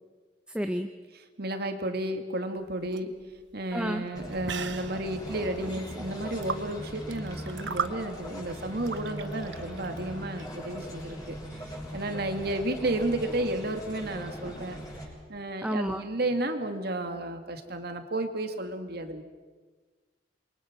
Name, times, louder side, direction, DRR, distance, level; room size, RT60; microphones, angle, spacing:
voice 1, 0.5-0.9 3.7-4.0 15.6-16.0, equal, 5° right, 6 dB, 0.9 m, -29 dB
voice 2, 1.4-14.8 15.3-19.2, right 1 dB, 60° right, 6 dB, 2.2 m, -32 dB
sound 1, 2.6-10.6, right 6 dB, 75° right, 1.1 m, -39 dB
sound 2, 4.1-15.1, equal, 20° left, 6.6 m, -40 dB
28.0 x 23.0 x 6.1 m, 1.4 s
head